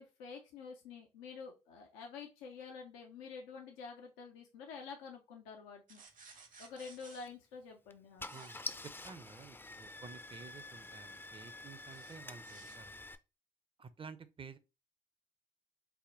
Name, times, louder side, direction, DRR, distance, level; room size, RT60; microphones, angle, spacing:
voice 1, 0.0-6.0 6.6-8.3, left 5 dB, 90° left, 0.5 m, -49 dB
sound 1, 5.9-7.3 8.2-8.6 11.9-12.8, right 4 dB, 55° right, 1.1 m, -57 dB
Car / Engine starting, 7.1-7.3 7.9-8.0 8.2-13.2, left 2 dB, 15° left, 0.4 m, -47 dB
voice 2, 8.3-12.9 13.8-14.6, right 5 dB, 35° right, 0.6 m, -52 dB
3.5 x 2.1 x 3.7 m
hypercardioid pair, 45°, 16 cm